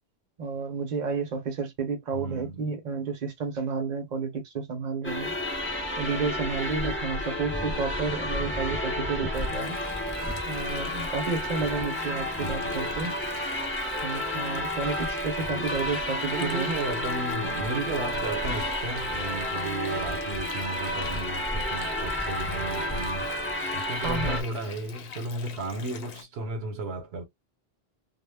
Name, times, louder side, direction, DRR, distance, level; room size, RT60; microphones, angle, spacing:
voice 1, 0.4-5.3 6.0-9.8 10.5-13.2 14.0-16.7 24.0-24.4, right 4 dB, 45° right, 0.8 m, -31 dB
voice 2, 2.1-2.6 7.5-7.8 12.4-13.1 15.5-15.9 16.3-23.3 23.7-27.3, right 3 dB, 75° right, 1.0 m, -34 dB
sound 1, 5.0-24.4, left 1 dB, 15° left, 0.4 m, -31 dB
Water, 9.3-26.2, left 7 dB, 70° left, 0.8 m, -45 dB
2.1 x 2.1 x 3.3 m
omnidirectional pair, 1.1 m